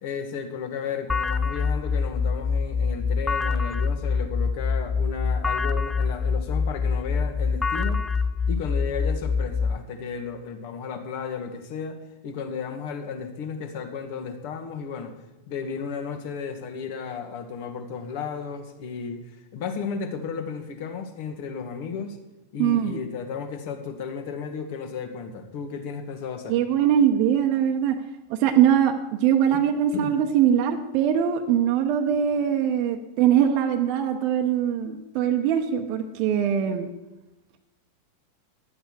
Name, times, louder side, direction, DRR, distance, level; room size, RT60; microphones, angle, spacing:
voice 1, 0.0-8.1 8.5-15.1 15.5-19.2 19.5-22.2 22.5-26.6 29.5-29.6 29.9-30.1, left 6 dB, 50° left, 7 dB, 1.7 m, -34 dB
sound 1, 1.1-9.8, left 5 dB, 10° left, 0.5 m, -25 dB
voice 2, 22.6-23.0 26.5-28.0 28.3-36.9, right 9 dB, 45° right, 4 dB, 0.9 m, -22 dB
11.0 x 8.7 x 6.4 m, 1.0 s
figure-of-eight pair, 90°, 0 cm